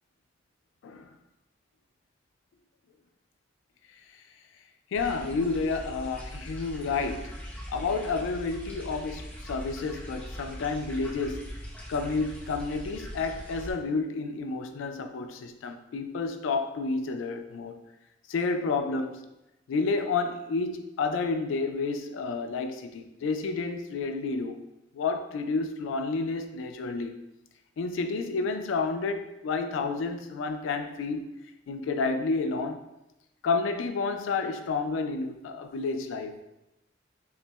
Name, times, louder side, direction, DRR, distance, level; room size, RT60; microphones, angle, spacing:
voice 1, 0.8-1.1 4.9-7.4 7.7-11.5 11.9-17.8 18.3-19.2 19.7-24.6 24.9-27.2 27.8-31.3 31.7-32.8 33.4-36.4, left 4 dB, 90° left, 7 dB, 0.3 m, -30 dB
sound 1, 4.9-13.7, equal, 10° left, 0.5 m, -41 dB
5.4 x 2.0 x 2.2 m, 0.94 s
head